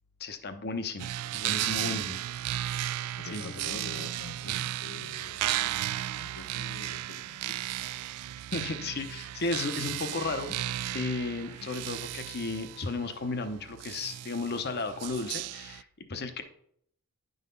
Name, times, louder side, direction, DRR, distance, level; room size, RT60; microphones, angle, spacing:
voice 1, 0.2-2.2 3.3-3.7 8.5-10.6 10.9-16.4, left 3 dB, 45° left, 8 dB, 0.8 m, -34 dB
sound 1, 1.0-15.8, right 13 dB, 85° right, 0.3 m, -35 dB
voice 2, 3.1-5.8 6.1-7.6 11.5-11.7, left 4 dB, 75° left, 8 dB, 0.5 m, -46 dB
10.5 x 4.0 x 5.3 m, 0.68 s
head